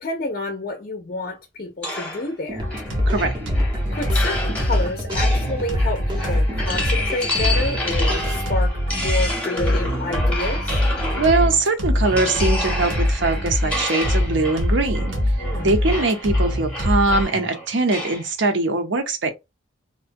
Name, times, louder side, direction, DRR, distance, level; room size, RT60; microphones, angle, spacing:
voice 1, 0.0-2.7 3.9-10.7 15.4-15.7, left 2 dB, 45° left, 0.5 m, -29 dB
sound 1, 1.8-11.6 12.0-18.3, left 1 dB, 5° left, 0.8 m, -30 dB
sound 2, 2.5-8.5, equal, 20° right, 0.5 m, -33 dB
sound 3, 2.6-17.2, left 1 dB, 90° right, 0.9 m, -23 dB
voice 2, 11.2-15.1 15.6-19.3, right 3 dB, 70° right, 0.6 m, -21 dB
2.5 x 2.1 x 2.5 m
head